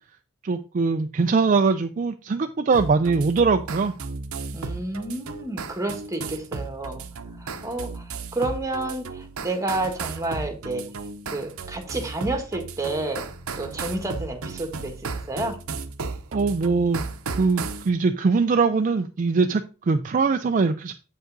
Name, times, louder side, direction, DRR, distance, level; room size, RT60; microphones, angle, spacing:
voice 1, 0.4-3.9 16.3-17.0 17.4-20.9, right 4 dB, 35° right, 7 dB, 0.4 m, -22 dB
sound 1, 2.7-17.9, right 4 dB, 80° right, 0.8 m, -35 dB
voice 2, 4.5-7.1 7.4-10.8 11.3-13.3 13.6-15.6, right 2 dB, 15° right, 5 dB, 1.3 m, -30 dB
7.7 x 5.3 x 3.8 m, 0.34 s
head